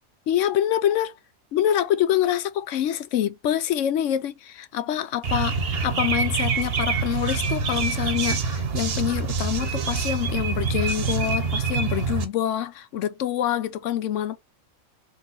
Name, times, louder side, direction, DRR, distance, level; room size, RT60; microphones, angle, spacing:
voice 1, 0.3-1.1 1.5-14.4, left 11 dB, 75° left, 0.9 m, -26 dB
sound 1, 5.2-12.2, right 5 dB, 55° right, 1.0 m, -26 dB
4.0 x 2.8 x 3.8 m
omnidirectional pair, 1.4 m